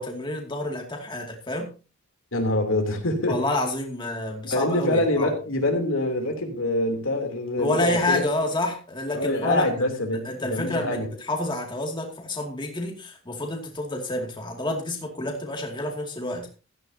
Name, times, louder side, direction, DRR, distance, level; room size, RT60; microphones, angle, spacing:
voice 1, 0.0-1.7 3.3-5.3 7.6-9.7 10.2-16.5, left 1 dB, 25° left, 2.4 m, -29 dB
voice 2, 2.3-3.4 4.4-8.2 9.1-11.1, left 1 dB, 80° left, 3.3 m, -25 dB
16.0 x 13.0 x 2.8 m
head